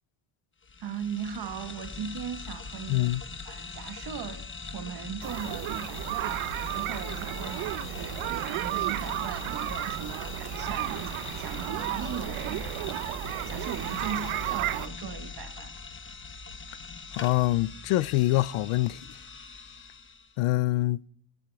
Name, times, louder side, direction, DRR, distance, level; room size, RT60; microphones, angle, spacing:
sound 1, 0.6-20.3, left 4 dB, 25° left, 1.1 m, -41 dB
voice 1, 0.8-3.1 3.5-4.5 4.7-13.1 13.5-15.7, right 7 dB, 50° right, 1.4 m, -38 dB
voice 2, 2.9-3.2 17.1-19.0 20.4-21.0, left 18 dB, 90° left, 0.6 m, -25 dB
sound 2, 5.2-14.9, right 16 dB, 90° right, 0.8 m, -33 dB
23.5 x 12.5 x 3.4 m
cardioid pair, 120°, 49 cm